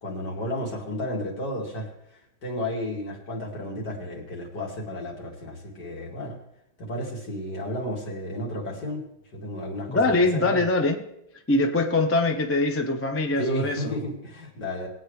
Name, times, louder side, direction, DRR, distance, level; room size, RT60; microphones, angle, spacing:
voice 1, 0.0-6.4 6.8-9.0 9.3-10.0 10.3-10.6 13.4-14.9, equal, 55° left, -1 dB, 3.1 m, -32 dB
voice 2, 9.9-11.0 11.5-13.9, left 2 dB, 20° left, 4 dB, 0.3 m, -23 dB
21.0 x 8.9 x 3.3 m, 0.81 s
omnidirectional pair, 2.2 m